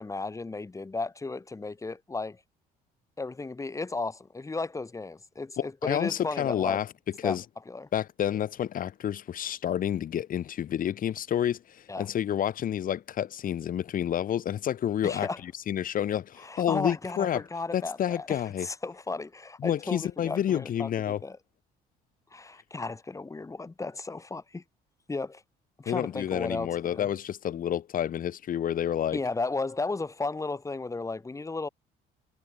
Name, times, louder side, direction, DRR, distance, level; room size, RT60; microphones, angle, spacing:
voice 1, 0.0-2.4 3.2-6.8 7.2-7.4 7.7-7.9 11.9-12.1 15.0-15.4 16.4-21.4 22.3-24.6 25.1-25.4 25.8-27.1 29.1-31.7, left 3 dB, 20° left, 5.2 m, -34 dB
voice 2, 5.8-6.9 7.2-7.4 7.9-17.4 17.7-18.7 19.6-21.2 25.9-29.2, left 10 dB, 55° left, 4.6 m, -29 dB
cardioid pair, 110°, 17 cm